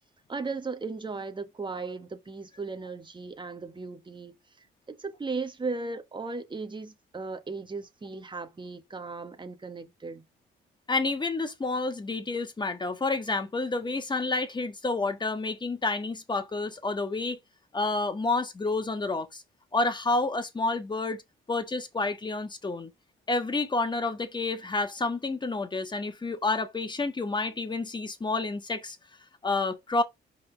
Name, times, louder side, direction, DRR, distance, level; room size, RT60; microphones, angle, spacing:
voice 1, 0.3-10.2, right 4 dB, 25° right, 1.3 m, -37 dB
voice 2, 10.9-17.4 17.7-19.4 19.7-21.2 21.5-22.9 23.3-29.0 29.4-30.0, left 3 dB, 20° left, 1.4 m, -29 dB
5.2 x 4.0 x 4.9 m
cardioid pair, 90°, 20 cm